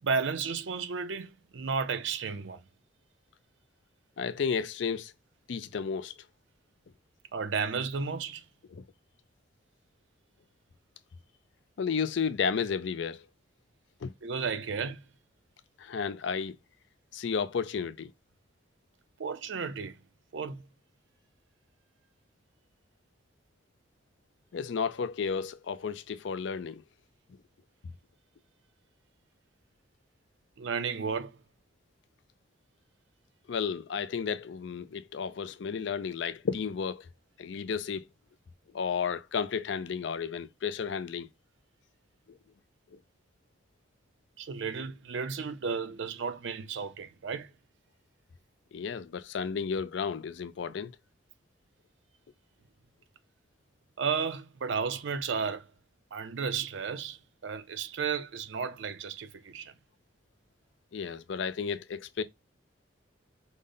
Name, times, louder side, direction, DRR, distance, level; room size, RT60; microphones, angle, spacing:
voice 1, 0.0-2.6 7.3-8.4 14.2-15.0 19.2-20.0 20.3-20.6 30.6-31.4 44.4-47.5 54.0-55.7 56.1-59.7, right 5 dB, 65° right, 0.5 m, -33 dB
voice 2, 4.2-5.1 5.5-6.1 8.7-8.8 11.8-13.2 14.0-14.1 15.8-16.6 17.1-18.1 24.5-26.8 33.5-37.1 37.4-38.0 38.7-41.3 48.7-50.9 60.9-62.2, left 6 dB, 65° left, 0.4 m, -32 dB
5.1 x 2.1 x 3.7 m
head